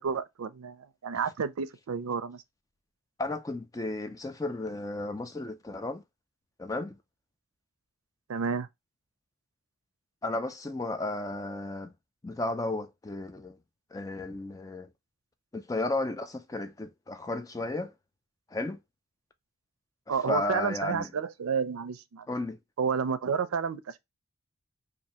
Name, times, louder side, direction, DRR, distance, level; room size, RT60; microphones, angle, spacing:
voice 1, 0.0-2.4 8.3-8.7 20.1-22.2 22.8-24.0, right 6 dB, 85° right, 0.4 m, -31 dB
voice 2, 3.2-6.0 6.6-7.0 10.2-11.9 12.2-13.6 13.9-14.9 15.5-17.9 18.5-18.8 20.1-21.1 22.3-22.6, left 2 dB, 15° left, 0.3 m, -33 dB
2.8 x 2.6 x 4.1 m
head